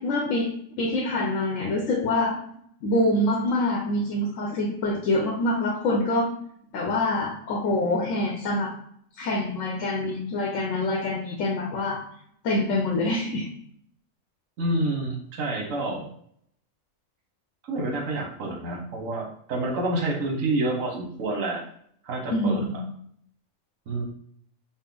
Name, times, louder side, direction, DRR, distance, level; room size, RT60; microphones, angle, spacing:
voice 1, 0.0-2.4 2.8-6.3 6.7-8.7 9.2-12.0 12.4-13.5 22.3-22.8, left 1 dB, 80° left, 1 dB, 1.0 m, -25 dB
voice 2, 14.6-16.1 17.6-21.6 22.0-22.7 23.9-24.0, right 2 dB, 85° right, 1 dB, 1.3 m, -28 dB
4.1 x 2.0 x 3.8 m, 0.64 s
omnidirectional pair, 1.4 m